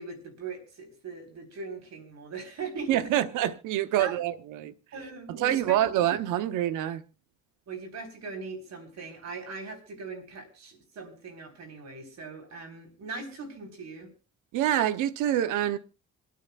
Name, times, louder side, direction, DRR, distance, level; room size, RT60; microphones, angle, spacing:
voice 1, 0.0-3.1 4.0-4.2 4.9-6.0 7.7-14.1, right 4 dB, 60° right, 3.7 m, -40 dB
voice 2, 2.9-4.7 5.4-7.0 14.5-15.8, right 12 dB, 90° right, 0.7 m, -26 dB
27.0 x 9.4 x 2.2 m
cardioid pair, 90°, 30 cm